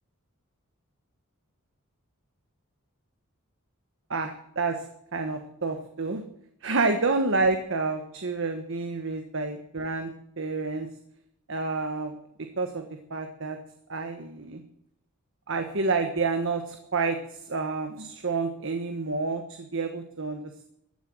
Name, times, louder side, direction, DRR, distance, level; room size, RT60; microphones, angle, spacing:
voice 1, 4.1-4.8 5.1-6.2 6.6-10.1 10.4-10.9 11.5-12.1 12.6-13.6 13.9-14.6 15.5-17.2 17.5-20.4, right 3 dB, 60° right, 5 dB, 1.3 m, -29 dB
15.0 x 10.0 x 7.8 m, 0.74 s
head